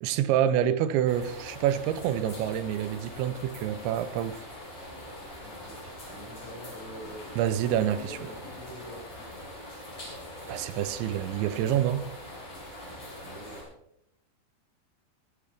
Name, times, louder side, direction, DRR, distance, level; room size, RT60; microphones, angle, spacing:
voice 1, 0.0-4.4 7.4-8.2 10.5-12.1, right 10 dB, 85° right, 3.0 m, -27 dB
sound 1, 1.0-13.6, left 1 dB, 30° left, 6.7 m, -43 dB
voice 2, 5.4-9.3 13.2-13.6, equal, 65° left, 7.4 m, -46 dB
23.5 x 10.0 x 3.5 m
omnidirectional pair, 5.3 m